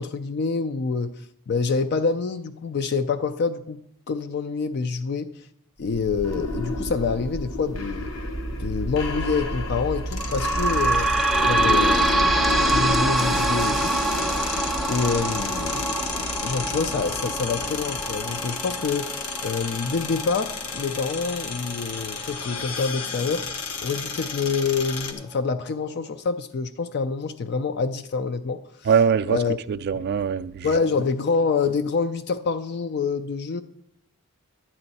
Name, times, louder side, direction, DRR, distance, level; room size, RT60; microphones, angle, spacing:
voice 1, 0.0-3.8 4.1-5.5 5.8-8.1 8.6-11.1 11.4-14.0 14.3-14.5 14.9-16.0 16.4-23.4 23.8-28.9 29.3-29.6 30.6-33.6, left 4 dB, 50° left, 0.4 m, -27 dB
sound 1, 5.8-18.6, left 1 dB, 65° left, 1.1 m, -30 dB
sound 2, 10.0-25.1, left 4 dB, 85° left, 1.2 m, -33 dB
sound 3, 10.2-23.4 23.9-24.0 24.3-24.4 25.2-25.3, right 2 dB, ahead, 0.5 m, -26 dB
voice 2, 28.9-29.4 29.7-30.7, right 7 dB, 45° right, 0.3 m, -22 dB
11.0 x 8.8 x 4.1 m
head